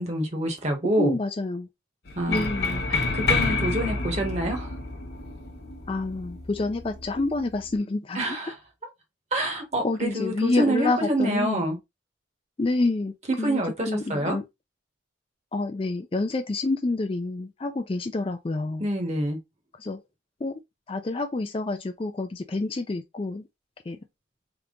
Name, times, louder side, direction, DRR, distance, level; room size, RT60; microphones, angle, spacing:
voice 1, 0.0-1.2 2.2-2.4 2.9-4.7 8.1-8.5 9.3-11.8 13.3-14.4 18.8-19.4, right 1 dB, 35° right, 1.1 m, -27 dB
voice 2, 1.0-1.7 2.3-2.8 5.9-8.5 9.8-11.6 12.6-14.4 15.5-18.9 19.8-20.0 20.4-20.6 20.9-23.5 23.9-24.0, left 2 dB, 30° left, 0.3 m, -28 dB
sound 1, 2.1-7.7, left 3 dB, 55° left, 1.1 m, -29 dB
3.5 x 2.9 x 3.7 m
head